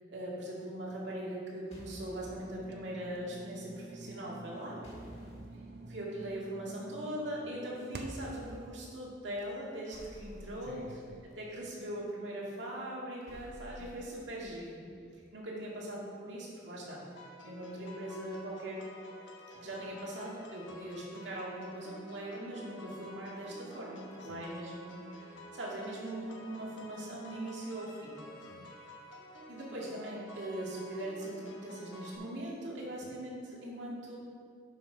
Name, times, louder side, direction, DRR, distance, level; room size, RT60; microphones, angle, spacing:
voice 1, 0.1-4.8 5.9-10.8 11.4-14.8 15.3-18.9 19.5-28.2 29.5-34.2, right 1 dB, 75° right, -4 dB, 2.0 m, -41 dB
sound 1, 1.7-2.4 4.8-5.5 7.9-8.7 9.9-11.3 13.3-14.7, equal, 35° left, 2.0 m, -51 dB
sound 2, 1.7-8.4, right 2 dB, 55° right, 0.7 m, -49 dB
voice 2, 5.1-5.4 7.4-7.6 10.6-11.2 13.8-14.0 14.9-15.2 20.7-20.8 24.2-24.4 25.3-25.5 28.4-28.8 33.0-33.2, left 1 dB, 65° left, 0 dB, 0.7 m, -54 dB
sound 3, 17.2-32.2, equal, 85° left, 1.1 m, -51 dB
7.7 x 5.5 x 5.5 m, 2.3 s
head